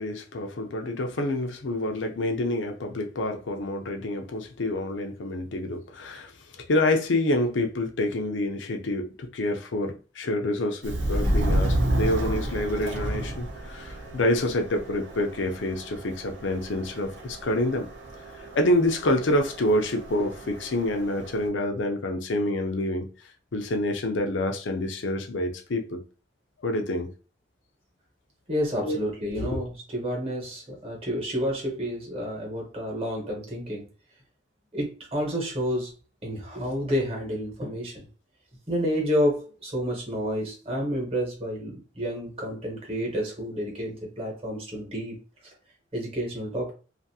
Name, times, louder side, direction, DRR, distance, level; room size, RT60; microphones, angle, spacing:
voice 1, 0.0-6.3 6.7-17.9 18.5-23.1 23.5-26.0 26.6-27.1 28.8-29.0 29.3-29.6, left 1 dB, 80° left, 0.6 m, -27 dB
Subway metro underground, 10.8-21.5, right 1 dB, 75° right, 0.8 m, -31 dB
voice 2, 28.5-33.9 34.7-35.9 36.2-38.1 38.7-45.2 45.9-46.7, equal, 30° right, 1.0 m, -30 dB
2.6 x 2.5 x 2.7 m
head